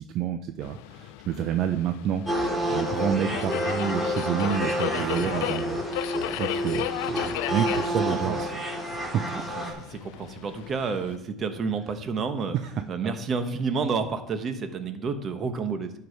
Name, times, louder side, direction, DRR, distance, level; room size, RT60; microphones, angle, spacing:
voice 1, 0.0-2.2 2.7-6.1 6.4-8.4 9.1-9.2 12.6-12.7 13.0-13.1, right 9 dB, 55° right, 8 dB, 0.6 m, -29 dB
Subway metro underground, 0.6-11.2, left 15 dB, 80° left, 0.4 m, -36 dB
sound 1, 2.2-9.7, equal, 5° right, 2.5 m, -29 dB
voice 2, 4.9-5.3 8.1-8.6 9.6-12.6 12.9-15.9, right 5 dB, 35° right, 9 dB, 1.1 m, -30 dB
11.5 x 4.8 x 4.7 m, 0.79 s
supercardioid pair, 115°, 0 cm